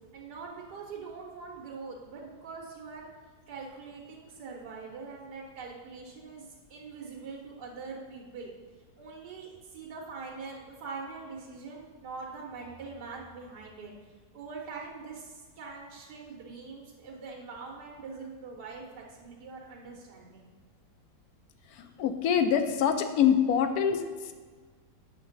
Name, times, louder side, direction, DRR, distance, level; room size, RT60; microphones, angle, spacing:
voice 1, 0.1-3.1 3.5-8.5 9.0-13.9 14.3-20.5 21.6-21.7, right 4 dB, 80° right, -2 dB, 1.5 m, -43 dB
voice 2, 21.7-24.3, left 8 dB, 70° left, 8 dB, 1.0 m, -25 dB
7.6 x 5.1 x 3.9 m, 1.5 s
omnidirectional pair, 1.8 m